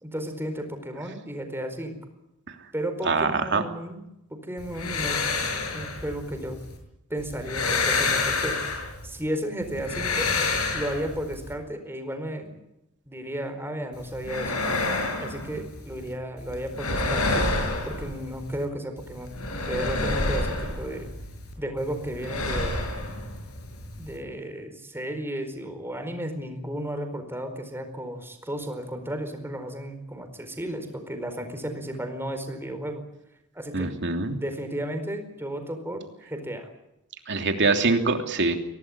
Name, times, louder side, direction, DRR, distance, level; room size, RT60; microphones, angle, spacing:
voice 1, 0.0-2.0 2.7-4.0 4.3-6.6 7.1-10.3 10.7-12.6 13.1-14.5 15.2-17.5 17.9-19.3 19.7-21.1 21.6-22.9 24.0-33.0 33.5-33.9 34.4-36.7, right 1 dB, 10° right, 6 dB, 4.6 m, -34 dB
voice 2, 3.0-3.6 33.7-34.4 37.3-38.6, right 3 dB, 55° right, 6 dB, 3.1 m, -24 dB
sound 1, 4.6-6.8 7.2-9.2 9.6-11.5 13.9-16.1 16.4-18.6 19.0-21.5 21.8-24.2, left 3 dB, 80° left, 7.5 m, -29 dB
24.0 x 17.5 x 9.9 m, 0.86 s
head